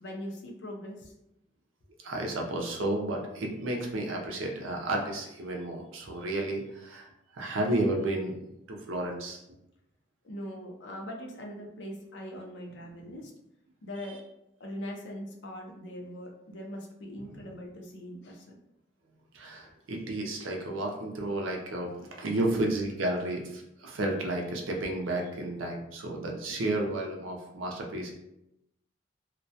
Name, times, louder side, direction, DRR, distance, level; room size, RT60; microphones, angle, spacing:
voice 1, 0.0-1.1 10.2-13.3 13.8-14.2 14.6-18.6, equal, 60° left, 2 dB, 0.5 m, -41 dB
voice 2, 2.0-7.1 7.3-8.3 8.7-9.4 13.0-13.1 19.3-28.1, right 1 dB, 85° right, 1 dB, 0.5 m, -32 dB
2.2 x 2.1 x 2.6 m, 0.83 s
head